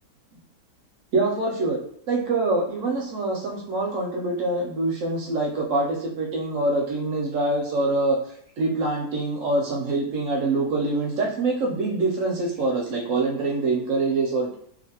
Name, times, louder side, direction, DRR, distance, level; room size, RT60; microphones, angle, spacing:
voice 1, 1.1-1.8 2.1-8.2 8.6-14.5, right 2 dB, 70° right, -1 dB, 0.8 m, -25 dB
2.7 x 2.5 x 2.8 m, 0.64 s
omnidirectional pair, 1.6 m